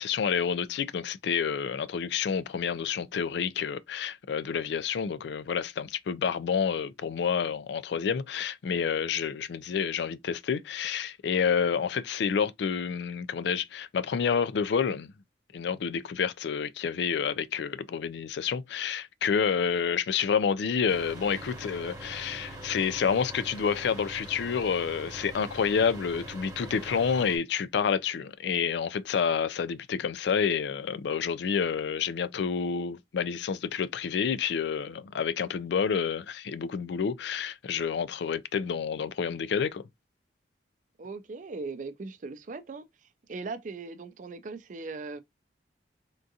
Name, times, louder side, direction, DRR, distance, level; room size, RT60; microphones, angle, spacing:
voice 1, 0.0-15.1 15.5-39.8, left 6 dB, 65° left, 0.3 m, -29 dB
sound 1, 20.9-27.4, right 1 dB, 20° right, 0.9 m, -43 dB
voice 2, 41.0-42.9 43.3-45.2, right 3 dB, 45° right, 0.4 m, -39 dB
3.7 x 2.4 x 2.7 m
head